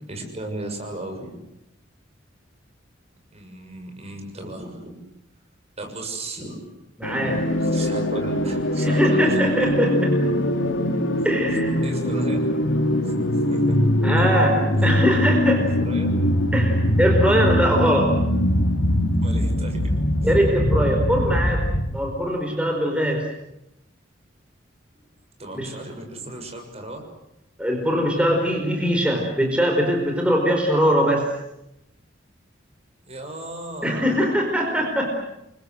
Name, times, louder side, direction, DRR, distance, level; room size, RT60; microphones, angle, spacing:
voice 1, 0.1-1.4 3.3-5.0 5.8-6.8 7.6-9.7 11.8-12.4 13.0-13.1 13.5-13.7 14.8-14.9 15.6-16.1 19.2-19.8 25.0-25.1 25.4-27.1 33.1-34.3, right 2 dB, 35° right, 4 dB, 6.5 m, -36 dB
sound 1, 7.0-22.0, left 1 dB, 80° left, 3.4 m, -22 dB
voice 2, 7.0-7.5 8.8-10.1 11.2-11.8 14.0-15.7 16.5-18.2 20.2-21.6 21.9-23.2 25.5-25.7 27.6-31.3 33.8-35.1, equal, 5° right, 1 dB, 4.7 m, -22 dB
29.0 x 24.0 x 7.9 m, 0.86 s
head